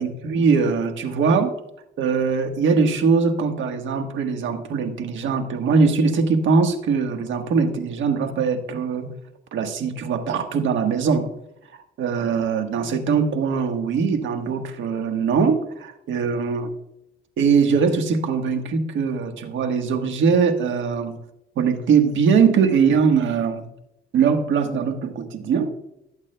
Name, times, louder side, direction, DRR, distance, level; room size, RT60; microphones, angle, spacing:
voice 1, 0.0-1.5 2.0-9.1 9.5-11.3 12.0-16.7 17.4-21.2 21.6-23.6 24.1-25.7, right 5 dB, 75° right, 6 dB, 1.4 m, -21 dB
16.0 x 8.2 x 2.2 m, 0.81 s
cardioid pair, 90°, 20 cm